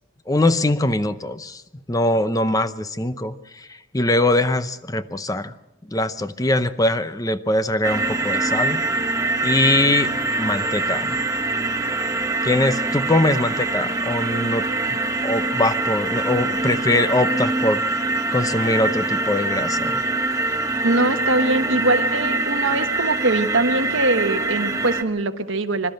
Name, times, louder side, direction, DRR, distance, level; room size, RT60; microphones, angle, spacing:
voice 1, 0.3-1.6 1.9-5.5 5.9-8.8 9.4-10.1 10.4-11.2 12.4-17.8 18.3-20.0, left 1 dB, 15° left, 12 dB, 0.7 m, -22 dB
sound 1, 7.8-25.0, right 2 dB, 15° right, 1.1 m, -24 dB
voice 2, 20.8-25.9, right 2 dB, 65° right, 8 dB, 1.3 m, -22 dB
26.5 x 12.5 x 7.8 m, 1.0 s
head